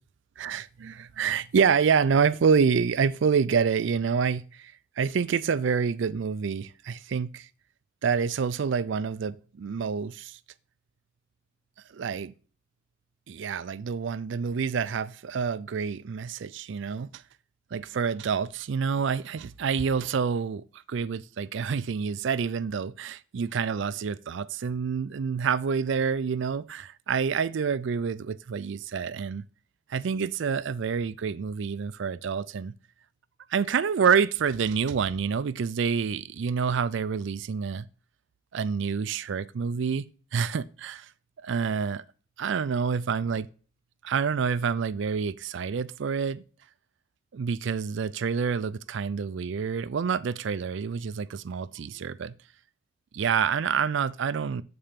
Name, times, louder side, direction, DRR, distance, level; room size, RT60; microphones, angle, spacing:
voice 1, 0.4-4.7 5.0-7.5 8.0-10.4 11.9-12.3 13.3-17.2 17.7-29.4 29.9-32.7 33.5-37.9 38.5-41.1 41.4-42.0 42.4-43.5 44.0-46.4 47.3-52.3 53.1-54.6, right 6 dB, 60° right, 0.4 m, -27 dB
7.3 x 4.3 x 5.1 m
head